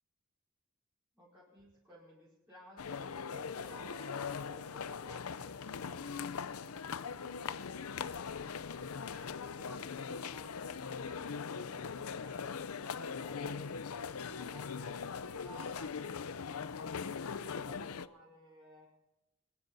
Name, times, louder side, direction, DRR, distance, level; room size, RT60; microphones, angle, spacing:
voice 1, 1.1-7.9 9.5-16.2 16.7-18.9, equal, 10° right, -9 dB, 5.0 m, -57 dB
sound 1, 2.8-18.1, left 6 dB, 80° left, 0.6 m, -41 dB
24.5 x 10.5 x 4.1 m, 0.95 s
head